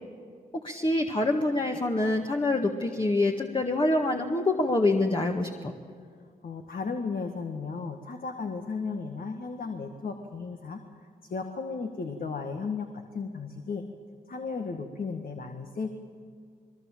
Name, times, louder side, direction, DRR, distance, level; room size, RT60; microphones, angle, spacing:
voice 1, 0.6-5.7, left 2 dB, 25° left, 2 dB, 1.8 m, -26 dB
voice 2, 6.4-10.8 11.3-13.8 14.3-15.9, left 4 dB, 55° left, 4 dB, 1.8 m, -35 dB
22.0 x 21.5 x 7.5 m, 2.1 s
supercardioid pair, 50°, 18 cm